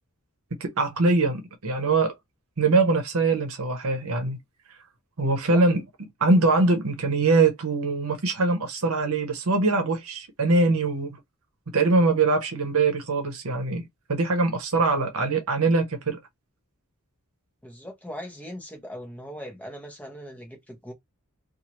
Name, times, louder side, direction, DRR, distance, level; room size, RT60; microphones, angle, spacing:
voice 1, 0.6-2.1 2.6-4.4 5.2-5.8 6.2-11.2 11.7-13.8 14.1-16.2, right 3 dB, 70° right, 0.9 m, -22 dB
voice 2, 17.6-20.9, equal, 5° left, 0.9 m, -40 dB
2.7 x 2.5 x 2.9 m
head